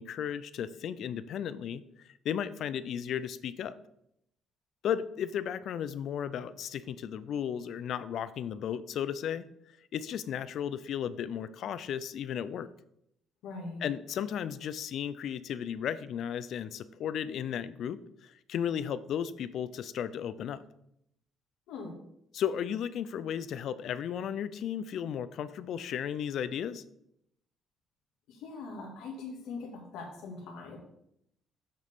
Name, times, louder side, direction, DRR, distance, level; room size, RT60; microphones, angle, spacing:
voice 1, 0.0-1.8 2.2-3.7 4.8-9.4 9.9-12.7 13.8-20.6 22.3-26.8, left 9 dB, 65° left, 15 dB, 0.4 m, -34 dB
voice 2, 13.4-13.9 21.7-21.9 28.3-30.8, left 3 dB, 85° left, 1 dB, 2.0 m, -41 dB
7.8 x 6.6 x 3.6 m, 0.76 s
cardioid pair, 120°, 0 cm